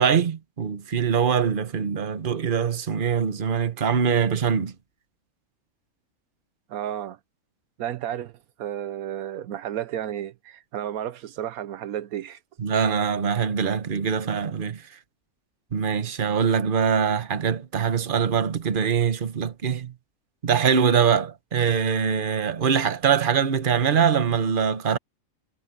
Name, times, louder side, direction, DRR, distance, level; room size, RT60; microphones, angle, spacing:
voice 1, 0.0-4.7 12.6-14.8 15.7-19.9 20.4-25.0, right 7 dB, 40° right, 1.2 m, -23 dB
voice 2, 6.7-7.2 7.8-12.4, right 11 dB, 80° right, 1.2 m, -32 dB
omnidirectional pair, 1.5 m